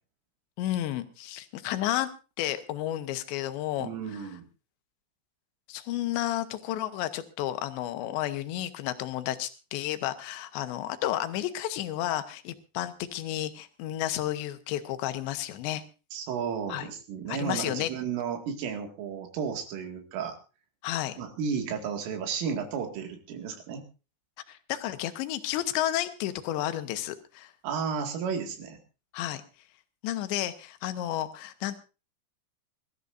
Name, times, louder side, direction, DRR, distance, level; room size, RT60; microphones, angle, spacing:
voice 1, 0.6-2.1 2.4-3.9 5.7-15.8 16.7-16.9 17.3-17.9 20.8-21.2 24.5-27.5 29.1-29.4 30.0-31.8, left 13 dB, 75° left, 10 dB, 3.1 m, -32 dB
voice 2, 3.8-4.5 16.1-20.4 21.2-23.8 27.6-28.8, right 6 dB, 80° right, 4 dB, 4.7 m, -33 dB
25.5 x 13.5 x 2.6 m, 0.32 s
omnidirectional pair, 5.7 m